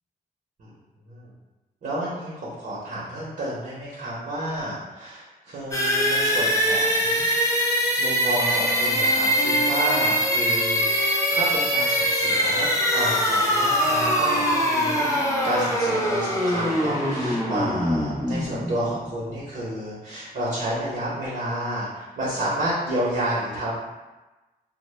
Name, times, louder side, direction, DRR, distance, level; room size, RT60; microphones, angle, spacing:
voice 1, 1.8-7.3 8.0-23.8, right 1 dB, 60° right, -7 dB, 0.7 m, -30 dB
sound 1, 5.7-19.4, equal, 20° left, 0.5 m, -23 dB
Wind instrument woodwind instrument, 8.4-16.8, equal, 80° left, 0.6 m, -33 dB
2.1 x 2.0 x 3.1 m, 1.1 s
cardioid pair, 105°, 16 cm